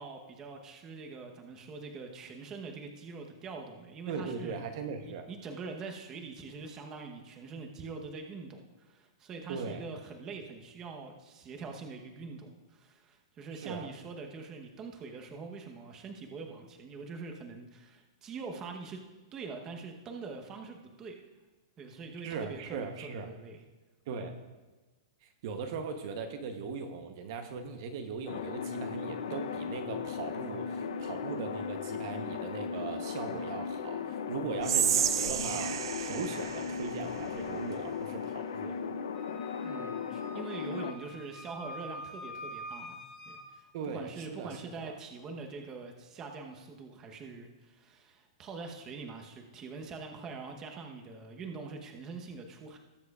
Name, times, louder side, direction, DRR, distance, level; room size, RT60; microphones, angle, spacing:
voice 1, 0.0-4.6 5.0-19.0 19.3-21.2 21.8-23.6 39.6-52.8, right 4 dB, 20° right, 3 dB, 0.9 m, -44 dB
voice 2, 4.1-5.3 9.5-9.8 13.5-13.9 22.2-23.3 24.1-24.4 25.2-38.8 43.7-45.0, right 5 dB, 50° right, 6 dB, 0.9 m, -39 dB
sound 1, 28.3-40.9, left 6 dB, 85° left, 0.7 m, -37 dB
Whispering, 34.6-37.8, right 9 dB, 70° right, 0.6 m, -32 dB
Wind instrument woodwind instrument, 39.1-43.5, equal, 20° left, 1.4 m, -45 dB
19.5 x 7.5 x 2.4 m, 1.2 s
hypercardioid pair, 160°, 3 cm